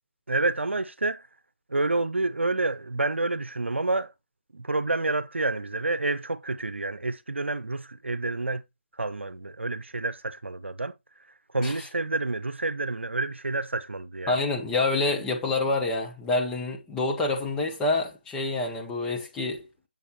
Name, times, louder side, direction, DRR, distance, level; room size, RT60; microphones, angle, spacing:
voice 1, 0.3-1.3 1.7-4.1 4.5-8.6 9.0-10.9 11.5-14.4, right 2 dB, 85° right, 0.8 m, -28 dB
voice 2, 14.3-19.7, left 2 dB, 10° left, 1.2 m, -27 dB
8.2 x 7.2 x 2.9 m
figure-of-eight pair, 155°, 6 cm